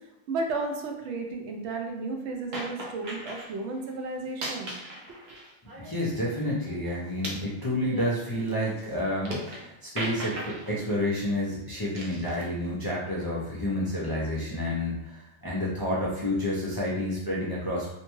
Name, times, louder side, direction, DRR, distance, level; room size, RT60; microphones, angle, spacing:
voice 1, 0.3-4.8 5.3-5.4, right 3 dB, 90° right, 2 dB, 0.9 m, -33 dB
sound 1, 2.5-3.5 4.2-6.3 6.6-9.7 10.0-10.8 11.9-12.5, right 1 dB, 55° right, 0.6 m, -38 dB
voice 2, 5.8-17.9, left 1 dB, 35° left, -7 dB, 0.4 m, -29 dB
2.7 x 2.2 x 2.9 m, 0.90 s
omnidirectional pair, 1.1 m